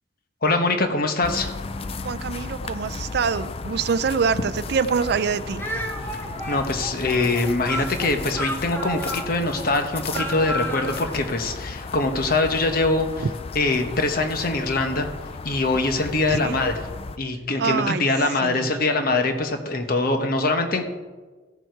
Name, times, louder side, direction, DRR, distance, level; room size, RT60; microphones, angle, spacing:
voice 1, 0.4-1.5 6.5-13.3 13.5-15.1 15.4-16.8 17.2-20.9, left 2 dB, 50° left, 6 dB, 1.1 m, -23 dB
sound 1, 1.2-17.2, left 3 dB, 30° left, 0.4 m, -35 dB
voice 2, 2.0-5.6 16.3-16.6 17.6-18.0 18.4-18.8, right 5 dB, 60° right, 14 dB, 0.4 m, -25 dB
Speech, 5.6-11.1, equal, 10° left, 1.4 m, -32 dB
15.5 x 7.1 x 4.6 m, 1.3 s
head